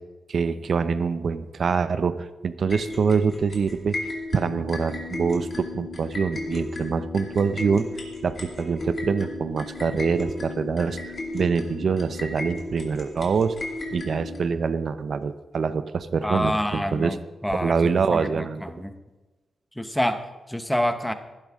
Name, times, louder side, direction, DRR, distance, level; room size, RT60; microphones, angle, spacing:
voice 1, 0.3-4.0 4.3-7.9 8.2-11.0 11.3-13.5 13.9-17.2 17.6-18.6, right 5 dB, 60° right, 13 dB, 0.6 m, -25 dB
sound 1, 2.7-14.4, left 2 dB, 50° left, 2.4 m, -35 dB
voice 2, 16.2-17.7 18.1-18.9 19.8-21.1, equal, 5° left, 9 dB, 0.9 m, -27 dB
15.0 x 12.0 x 3.6 m, 1.2 s
wide cardioid pair, 105°, 0 cm